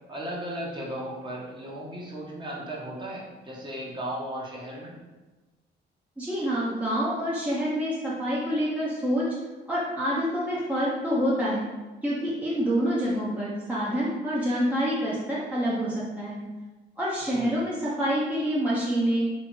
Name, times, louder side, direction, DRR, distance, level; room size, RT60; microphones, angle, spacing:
voice 1, 0.1-4.9 17.3-17.5, right 1 dB, 25° right, -4 dB, 1.2 m, -36 dB
voice 2, 6.2-9.3 9.7-11.6 12.0-16.4 17.0-19.3, equal, 5° right, -8 dB, 0.9 m, -27 dB
3.5 x 3.0 x 4.4 m, 1.2 s
cardioid pair, 90°, 20 cm